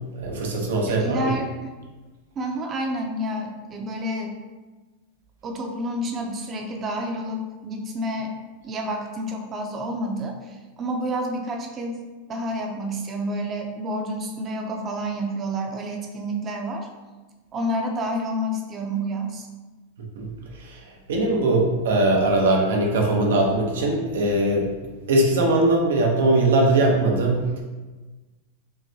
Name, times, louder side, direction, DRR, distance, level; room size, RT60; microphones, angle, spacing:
voice 1, 0.1-1.3 20.1-20.3 20.6-24.7 25.1-27.4, right 2 dB, 85° right, 0 dB, 0.9 m, -21 dB
voice 2, 0.9-1.7 2.4-4.3 5.4-8.3 8.6-16.9 17.5-19.5, equal, 30° right, 2 dB, 0.6 m, -29 dB
5.6 x 2.2 x 2.8 m, 1.2 s
hypercardioid pair, 120°, 0 cm